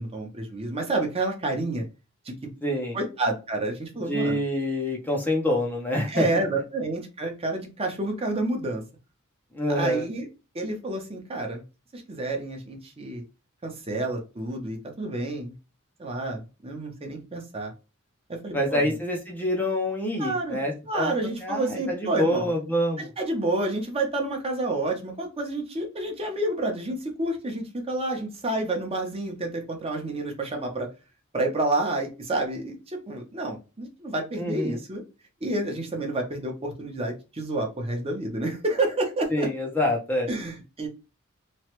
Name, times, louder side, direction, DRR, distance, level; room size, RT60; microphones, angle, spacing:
voice 1, 0.0-1.8 2.2-2.5 2.9-4.4 6.1-8.8 9.7-10.3 10.5-11.6 11.9-13.2 13.6-15.5 16.0-17.7 18.3-18.8 20.2-20.6 20.9-22.5 23.0-30.9 31.3-35.0 35.4-39.5 40.3-40.9, right 2 dB, 25° right, 2 dB, 0.8 m, -29 dB
voice 2, 2.6-3.0 4.1-6.4 9.5-10.1 18.5-21.1 21.4-23.1 34.4-34.8 39.3-40.3, left 1 dB, 10° left, 0 dB, 0.6 m, -26 dB
3.1 x 2.3 x 2.9 m, 0.29 s
head